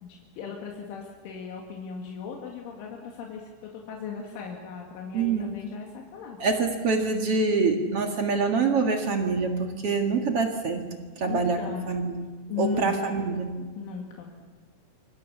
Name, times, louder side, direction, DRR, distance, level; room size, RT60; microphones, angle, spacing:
voice 1, 0.0-6.4 11.3-12.0 12.5-13.2 13.8-14.5, left 5 dB, 85° left, 0 dB, 4.5 m, -37 dB
voice 2, 5.1-5.5 6.4-10.9 11.2-11.6 11.9-12.2 12.6-13.5, right 4 dB, 50° right, 4 dB, 1.7 m, -25 dB
27.0 x 24.5 x 7.2 m, 1.4 s
omnidirectional pair, 5.4 m